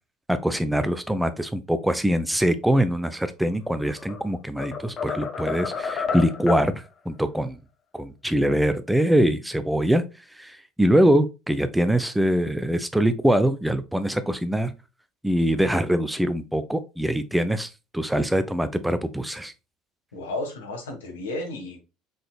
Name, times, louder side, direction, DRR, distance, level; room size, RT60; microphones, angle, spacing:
voice 1, 0.3-7.6 7.9-10.0 10.4-14.7 15.2-17.7 17.9-19.5, equal, 5° right, 0.6 m, -23 dB
sound 1, 3.7-4.2 4.6-6.7, left 5 dB, 45° left, 1.0 m, -30 dB
voice 2, 20.1-21.8, left 2 dB, 80° left, 1.3 m, -33 dB
5.1 x 3.8 x 2.2 m
hypercardioid pair, 70°, 0 cm